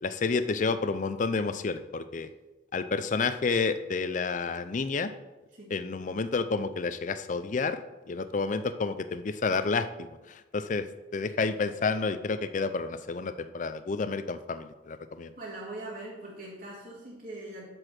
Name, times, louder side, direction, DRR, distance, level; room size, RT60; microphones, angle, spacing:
voice 1, 0.0-2.3 2.7-5.1 5.7-7.8 8.1-10.9 11.1-15.3, left 4 dB, 45° left, 11 dB, 0.5 m, -30 dB
voice 2, 5.5-5.8 15.4-17.7, right 2 dB, 55° right, -6 dB, 2.1 m, -41 dB
7.6 x 6.2 x 6.3 m, 1.1 s
head